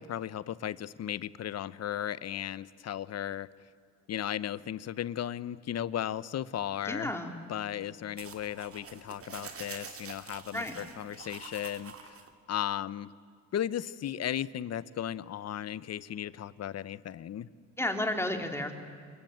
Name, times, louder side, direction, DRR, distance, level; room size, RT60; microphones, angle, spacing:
voice 1, 0.0-3.5 4.1-7.1 7.5-12.2 12.5-13.1 13.5-17.5, left 10 dB, 55° left, 18 dB, 0.9 m, -35 dB
voice 2, 6.8-7.3 10.5-10.7 17.8-18.7, left 1 dB, 10° left, 5 dB, 3.3 m, -32 dB
sound 1, 8.2-12.3, right 5 dB, 50° right, 2.9 m, -46 dB
27.0 x 22.5 x 9.0 m, 2.2 s
cardioid pair, 90°, 30 cm